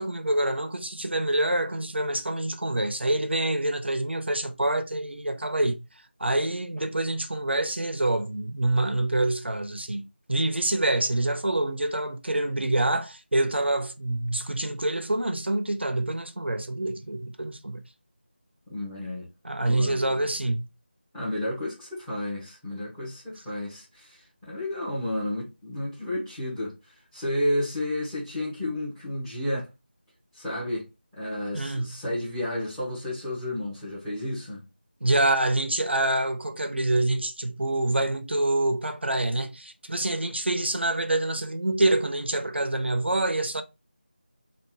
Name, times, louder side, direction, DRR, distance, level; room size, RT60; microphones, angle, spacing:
voice 1, 0.0-5.8 6.2-17.8 19.4-20.6 31.5-31.9 35.0-43.6, right 1 dB, 80° right, 0.8 m, -26 dB
voice 2, 18.7-19.3 19.7-20.2 21.1-26.7 27.1-29.7 30.3-30.9 31.1-34.6, left 1 dB, 5° left, 1.2 m, -31 dB
3.4 x 2.7 x 4.4 m
figure-of-eight pair, 170°, 6 cm